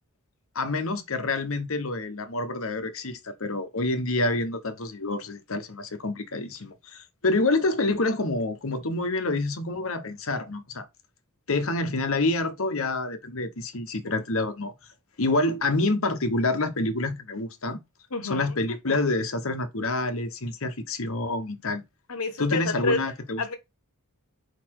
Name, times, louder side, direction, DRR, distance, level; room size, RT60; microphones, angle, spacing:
voice 1, 0.5-10.9 11.5-14.7 15.2-17.8 18.2-21.8 22.4-23.4, left 2 dB, 65° left, 1.2 m, -27 dB
voice 2, 18.1-18.5 22.1-23.0 23.4-23.6, left 3 dB, 85° left, 1.2 m, -29 dB
4.9 x 4.2 x 4.6 m
head